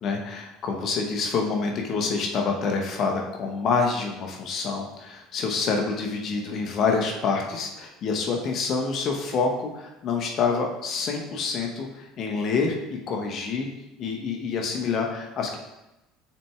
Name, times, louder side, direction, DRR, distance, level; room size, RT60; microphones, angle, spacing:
voice 1, 0.0-13.7 14.0-15.6, left 4 dB, 45° left, 2 dB, 0.9 m, -27 dB
6.9 x 6.0 x 2.3 m, 0.96 s
figure-of-eight pair, 65°, 0 cm